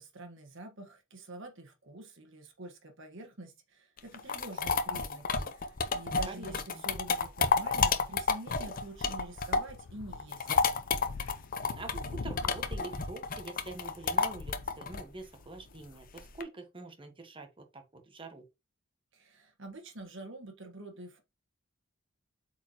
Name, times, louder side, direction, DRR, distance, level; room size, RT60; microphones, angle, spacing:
voice 1, 0.0-10.6 19.1-21.2, right 2 dB, 60° right, 1.5 m, -47 dB
sound 1, 4.0-9.8 10.1-16.4, left 5 dB, 45° left, 0.7 m, -30 dB
voice 2, 6.3-6.8 11.8-17.5 17.7-18.4, right 2 dB, 25° right, 1.3 m, -45 dB
sound 2, 9.7-15.0 15.7-15.8, left 4 dB, 90° left, 0.6 m, -44 dB
8.0 x 4.6 x 3.0 m
head